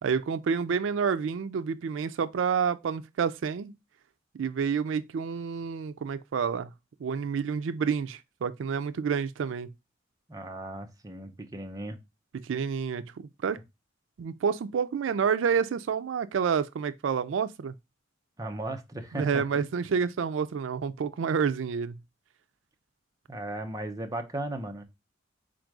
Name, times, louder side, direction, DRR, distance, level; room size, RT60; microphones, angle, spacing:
voice 1, 0.0-3.7 4.3-6.7 7.0-9.7 12.4-13.6 14.2-17.7 19.1-22.0, right 6 dB, 85° right, 0.4 m, -29 dB
voice 2, 10.3-12.0 18.4-19.4 23.3-24.8, right 1 dB, 20° right, 0.6 m, -36 dB
4.3 x 2.6 x 4.5 m
head